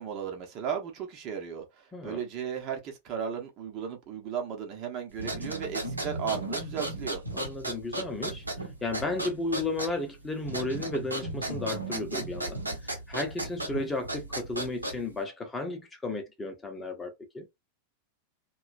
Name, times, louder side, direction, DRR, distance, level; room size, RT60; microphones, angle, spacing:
voice 1, 0.0-7.2, right 7 dB, 40° right, 0.9 m, -35 dB
sound 1, 5.1-15.2, right 1 dB, 85° right, 0.9 m, -35 dB
voice 2, 7.3-17.5, left 2 dB, 15° left, 0.8 m, -34 dB
2.9 x 2.3 x 2.5 m
figure-of-eight pair, 90°, 0 cm